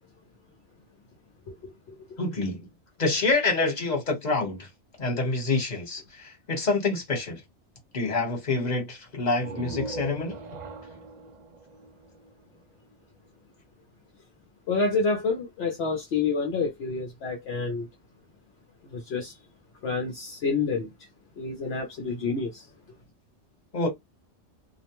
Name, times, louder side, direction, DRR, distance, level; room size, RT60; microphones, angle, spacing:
voice 1, 1.6-2.2 14.7-17.9 18.9-19.4 19.8-20.9 21.4-22.6, left 4 dB, 65° left, 0.9 m, -28 dB
voice 2, 2.2-2.7 3.0-4.7 5.0-7.4 7.9-10.4 23.7-23.9, left 3 dB, 40° left, 1.2 m, -27 dB
sound 1, 9.3-12.9, right 3 dB, 55° right, 0.5 m, -40 dB
2.4 x 2.1 x 2.9 m
omnidirectional pair, 1.2 m